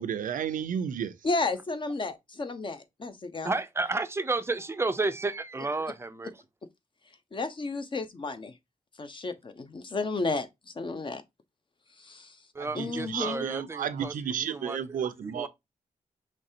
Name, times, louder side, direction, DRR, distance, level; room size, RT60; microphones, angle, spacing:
voice 1, 0.0-1.1 12.6-15.5, right 8 dB, 85° right, 0.5 m, -32 dB
voice 2, 1.2-3.5 7.3-8.5 9.0-10.5 10.8-11.2 12.0-12.4 12.7-13.5, left 3 dB, 35° left, 0.7 m, -32 dB
voice 3, 3.4-6.4 12.5-15.5, right 3 dB, 20° right, 0.5 m, -32 dB
5.2 x 3.3 x 2.7 m
wide cardioid pair, 100°, 14 cm